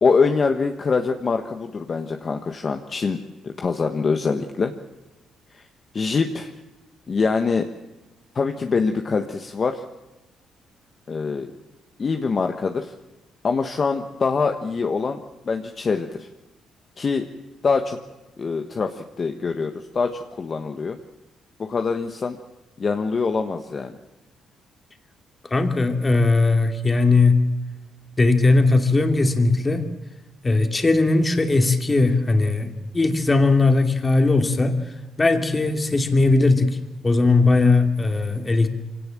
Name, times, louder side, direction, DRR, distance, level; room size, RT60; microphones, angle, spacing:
voice 1, 0.0-3.2 3.4-4.7 5.5-5.6 5.9-6.5 7.1-7.7 8.3-9.8 11.1-11.5 12.0-12.9 13.4-16.3 17.0-17.3 17.6-18.0 18.4-21.0 21.6-22.4 22.8-23.9, left 4 dB, 40° left, 5 dB, 1.4 m, -24 dB
voice 2, 25.5-27.4 28.2-29.8 30.4-34.8 35.2-36.8 37.0-38.7, left 3 dB, 25° left, 5 dB, 2.7 m, -18 dB
24.5 x 18.0 x 7.6 m, 1.0 s
cardioid pair, 90°, 0 cm